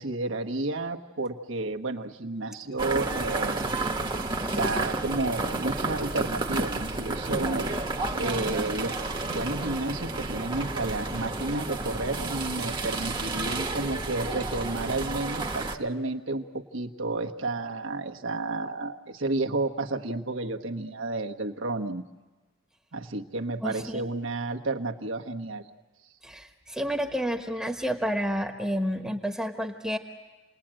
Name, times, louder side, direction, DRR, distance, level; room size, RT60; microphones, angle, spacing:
voice 1, 0.0-3.6 4.6-7.7 8.1-9.0 9.2-22.0 22.9-25.7, right 2 dB, 75° right, 4 dB, 1.3 m, -31 dB
sound 1, 2.8-15.8, right 2 dB, 25° right, 1.2 m, -31 dB
voice 2, 23.6-24.0 26.2-30.0, equal, 5° right, 3 dB, 1.2 m, -30 dB
28.5 x 20.0 x 8.9 m, 1.2 s
head